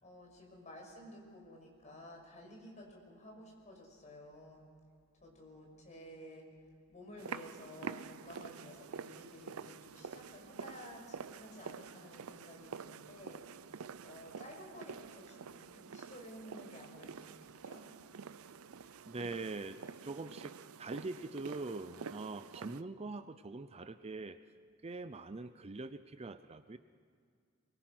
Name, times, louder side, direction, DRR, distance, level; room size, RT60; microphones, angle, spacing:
voice 1, 0.0-4.7 5.2-6.5 6.9-13.4 14.0-17.9, left 1 dB, 35° left, 0 dB, 5.8 m, -53 dB
sound 1, 7.2-22.8, right 6 dB, 90° right, 0.6 m, -48 dB
voice 2, 19.0-24.4 24.8-26.8, right 3 dB, 30° right, 11 dB, 0.6 m, -43 dB
23.5 x 22.5 x 6.1 m, 2.2 s
head